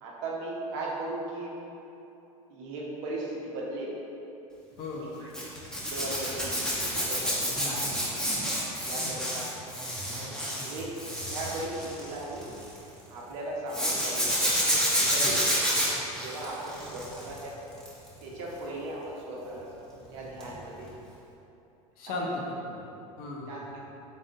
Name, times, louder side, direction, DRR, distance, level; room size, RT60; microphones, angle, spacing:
voice 1, 0.0-1.5 2.5-3.9 5.0-5.3 5.9-7.7 8.8-9.5 10.1-10.9 11.3-12.5 13.1-14.5 15.1-15.4 16.2-17.5 18.2-19.7 20.1-20.9 22.1-22.2 23.5-23.7, right 2 dB, 65° right, -4 dB, 0.9 m, -37 dB
voice 2, 4.8-5.2 7.6-7.9 15.2-15.4 22.0-22.9 23.2-23.7, left 2 dB, 55° left, -2 dB, 0.8 m, -36 dB
Zipper (clothing), 5.3-12.8 13.7-17.4 17.7-18.1 20.4-20.6 20.8-20.9, equal, 5° left, 1.1 m, -29 dB
4.1 x 3.6 x 2.6 m, 2.9 s
hypercardioid pair, 80°, 18 cm